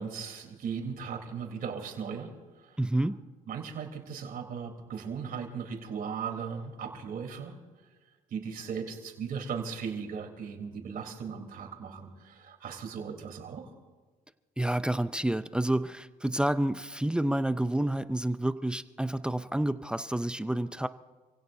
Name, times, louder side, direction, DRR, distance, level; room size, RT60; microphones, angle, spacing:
voice 1, 0.0-2.3 2.6-2.8 3.5-7.5 8.3-13.7, right 6 dB, 60° right, 2 dB, 3.6 m, -37 dB
voice 2, 2.8-3.1 14.6-20.9, right 1 dB, 5° right, 12 dB, 0.5 m, -29 dB
28.5 x 17.0 x 2.7 m, 1.4 s
cardioid pair, 110°, 17 cm